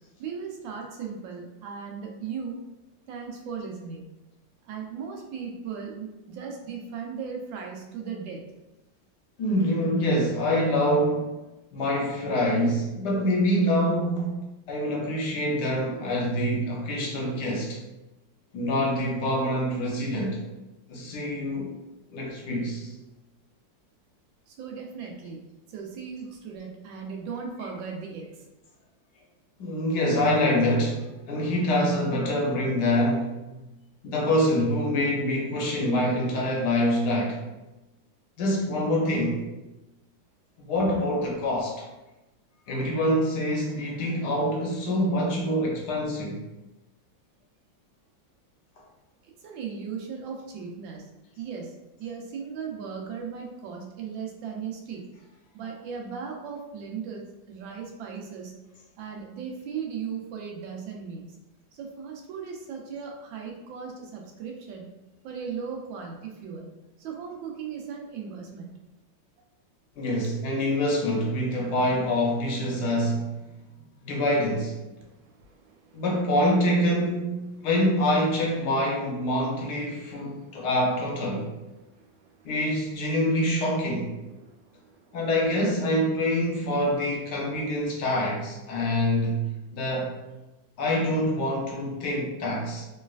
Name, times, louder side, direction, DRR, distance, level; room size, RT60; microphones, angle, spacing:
voice 1, 0.2-2.6 3.1-4.1 4.6-8.4 24.5-25.4 25.7-28.5 49.2-51.0 51.4-55.0 55.5-58.5 59.0-61.4 61.7-64.9 65.2-66.7 67.0-68.7 75.0-76.0 80.2-80.7 81.8-82.5 84.4-85.2, right 6 dB, 90° right, 0 dB, 1.4 m, -37 dB
voice 2, 9.4-11.4 11.7-14.4 14.7-17.8 18.5-20.4 20.9-21.7 22.1-22.9 27.6-27.7 29.6-33.6 34.0-37.4 38.4-39.4 40.6-41.8 42.7-46.4 70.0-73.5 74.0-74.8 75.9-81.5 82.4-84.2 85.1-90.1 90.8-92.8, equal, 70° left, -1 dB, 1.2 m, -25 dB
3.1 x 3.1 x 2.3 m, 1.0 s
omnidirectional pair, 2.0 m